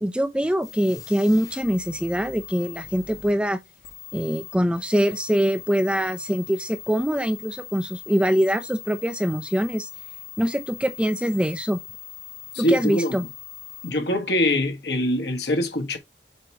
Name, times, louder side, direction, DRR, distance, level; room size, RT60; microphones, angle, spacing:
voice 1, 0.0-3.6 4.1-9.9 10.4-11.8 12.6-13.3, equal, 5° right, 0.5 m, -24 dB
sound 1, 0.6-13.9, left 14 dB, 20° left, 1.0 m, -41 dB
voice 2, 12.5-13.1 13.8-16.0, left 1 dB, 65° left, 1.4 m, -23 dB
7.6 x 2.9 x 4.6 m
head